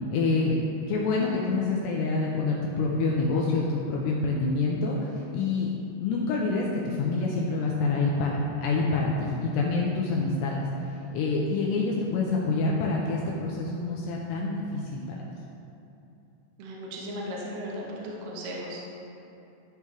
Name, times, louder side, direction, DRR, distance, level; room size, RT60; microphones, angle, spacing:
voice 1, 0.1-0.6 0.9-5.7 6.0-10.5 11.1-15.2, left 3 dB, 85° left, -3 dB, 2.5 m, -27 dB
voice 2, 16.6-18.8, equal, 70° right, -4 dB, 2.7 m, -36 dB
13.0 x 5.5 x 3.1 m, 2.9 s
omnidirectional pair, 5.5 m